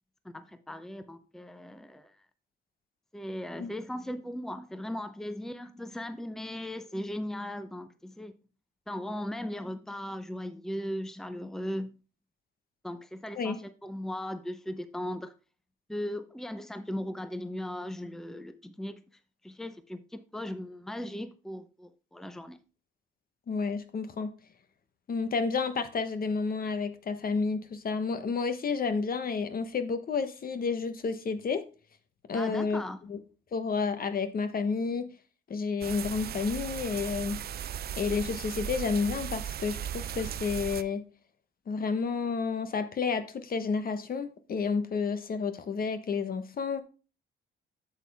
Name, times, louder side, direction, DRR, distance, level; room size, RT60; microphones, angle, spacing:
voice 1, 0.2-2.2 3.1-8.3 8.9-12.0 12.8-15.3 15.9-19.0 19.4-22.6 32.3-33.0, left 1 dB, ahead, 0.7 m, -38 dB
voice 2, 23.5-24.3 25.1-31.6 32.3-33.2 33.5-35.1 35.5-37.4 38.0-41.0 41.7-46.8, left 5 dB, 45° left, 1.1 m, -30 dB
sound 1, 35.8-40.8, right 10 dB, 50° right, 0.5 m, -37 dB
8.2 x 7.5 x 3.5 m
cardioid pair, 90°, 20 cm